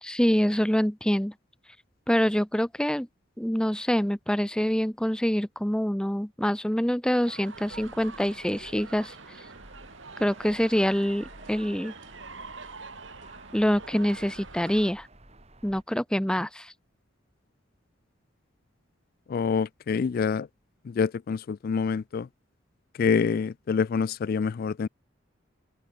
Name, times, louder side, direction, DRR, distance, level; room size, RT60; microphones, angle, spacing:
voice 1, 0.0-1.3 2.1-3.1 3.4-9.1 10.2-11.9 13.5-15.1 15.6-16.7, equal, 5° left, 0.8 m, -25 dB
sound 1, 7.1-14.9, right 4 dB, 75° right, 6.4 m, -45 dB
sound 2, 7.5-15.8, right 2 dB, 35° right, 4.4 m, -52 dB
voice 2, 19.3-20.5 20.9-22.3 23.0-24.9, left 5 dB, 50° left, 0.3 m, -26 dB
head